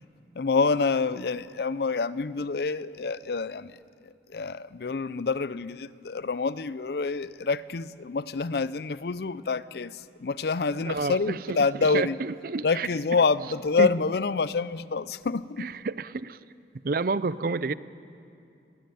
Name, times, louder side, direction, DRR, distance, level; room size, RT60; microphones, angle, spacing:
voice 1, 0.4-12.2 12.6-15.7, left 4 dB, 60° left, 0.5 m, -27 dB
voice 2, 10.8-12.9 13.8-13.9 15.6-16.4 16.8-17.7, right 4 dB, 55° right, 0.5 m, -29 dB
19.5 x 16.5 x 9.2 m
head